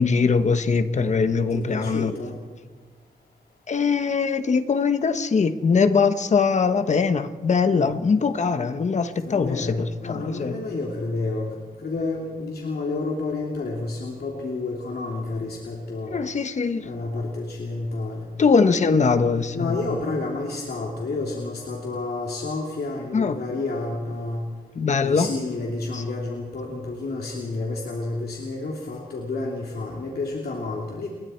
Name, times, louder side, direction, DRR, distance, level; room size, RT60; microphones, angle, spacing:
voice 1, 0.0-2.1 3.7-9.7 10.1-10.6 16.1-16.9 18.4-19.8 23.1-23.4 24.7-25.3 25.9-26.0, left 5 dB, 45° left, 1.1 m, -21 dB
voice 2, 1.5-2.4 7.7-7.9 9.2-16.2 16.8-18.3 19.5-24.4 25.0-31.1, left 3 dB, 75° left, 3.0 m, -30 dB
29.5 x 22.0 x 4.5 m
wide cardioid pair, 170°, 16 cm